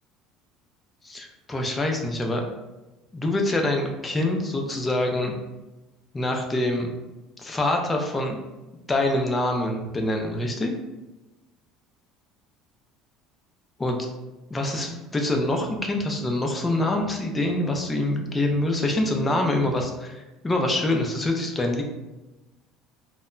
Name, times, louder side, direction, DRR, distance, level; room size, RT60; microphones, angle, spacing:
voice 1, 1.0-2.5 3.1-5.4 6.1-6.9 7.4-8.4 8.9-10.7 13.8-14.0 14.5-21.8, left 1 dB, 15° left, 2 dB, 0.4 m, -25 dB
2.1 x 2.1 x 3.6 m, 1.1 s
cardioid pair, 130°, 0 cm